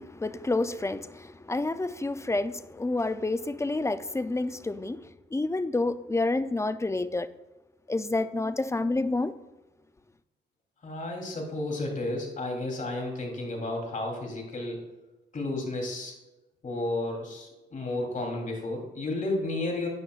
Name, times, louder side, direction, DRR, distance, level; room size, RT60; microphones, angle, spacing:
voice 1, 0.0-7.3 7.9-9.3, left 2 dB, 15° left, 0.5 m, -29 dB
voice 2, 10.8-14.8 15.3-16.1 16.6-19.9, left 2 dB, 40° left, 3.4 m, -32 dB
13.5 x 9.5 x 2.5 m
cardioid pair, 90°, 20 cm